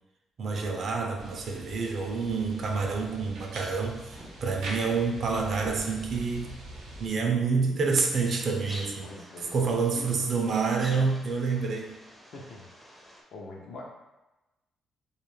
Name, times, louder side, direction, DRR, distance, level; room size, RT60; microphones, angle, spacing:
voice 1, 0.4-6.6 7.0-9.1 9.5-12.0, right 4 dB, 55° right, 2 dB, 0.4 m, -28 dB
sound 1, 1.2-7.1, right 1 dB, 90° right, 0.7 m, -43 dB
sound 2, 8.2-13.2, equal, 5° left, 0.5 m, -48 dB
voice 2, 9.0-10.5 12.3-12.7 13.3-13.9, left 2 dB, 65° left, -1 dB, 0.5 m, -44 dB
2.3 x 2.0 x 3.1 m, 1.0 s
cardioid pair, 90°, 0 cm